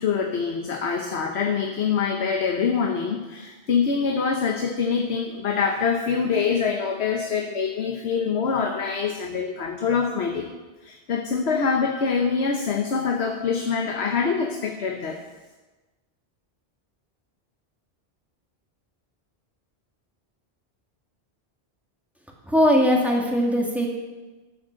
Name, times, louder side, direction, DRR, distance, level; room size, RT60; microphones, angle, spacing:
voice 1, 0.0-10.5 10.8-15.2, left 5 dB, 90° left, 3 dB, 1.3 m, -25 dB
voice 2, 22.5-23.9, equal, ahead, -2 dB, 2.2 m, -20 dB
13.0 x 6.4 x 7.5 m, 1.2 s
omnidirectional pair, 1.1 m